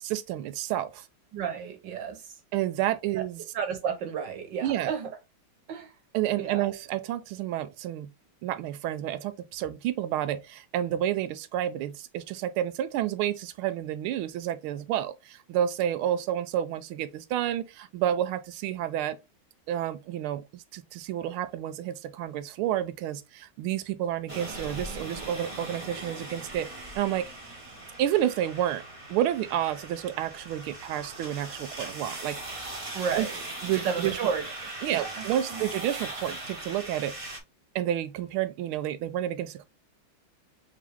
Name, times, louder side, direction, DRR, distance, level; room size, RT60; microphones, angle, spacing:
voice 1, 0.0-1.1 2.5-3.4 4.6-4.9 6.1-8.1 8.4-19.2 19.7-27.3 28.0-28.8 29.1-32.7 33.2-33.3 33.6-34.2 34.8-37.4 37.7-39.7, right 11 dB, 85° right, 1.5 m, -30 dB
voice 2, 1.3-2.3 3.2-3.3 3.5-5.1 5.7-5.9 6.4-6.7 32.9-33.4 33.8-35.6, right 7 dB, 60° right, 1.6 m, -32 dB
sound 1, 24.3-37.4, right 2 dB, 45° right, 0.4 m, -40 dB
3.8 x 3.6 x 3.4 m
omnidirectional pair, 2.3 m